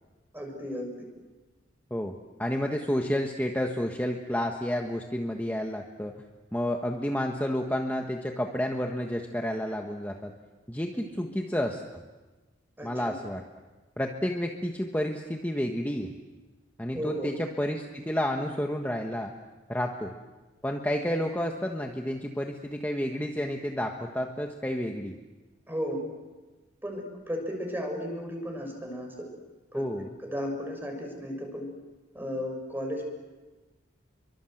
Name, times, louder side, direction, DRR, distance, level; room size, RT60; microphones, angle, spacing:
voice 1, 0.3-0.9 11.2-11.3 12.8-13.1 16.9-17.3 25.7-26.0 26.8-29.1 29.7-29.9 30.2-31.7 32.1-33.0, equal, 10° right, 3 dB, 6.6 m, -34 dB
voice 2, 1.9-6.1 6.5-10.3 10.7-12.0 12.8-13.4 14.0-16.1 16.8-19.3 19.7-20.1 20.6-25.1 29.7-30.1, equal, 10° left, 2 dB, 1.3 m, -30 dB
29.5 x 24.0 x 7.9 m, 1.2 s
head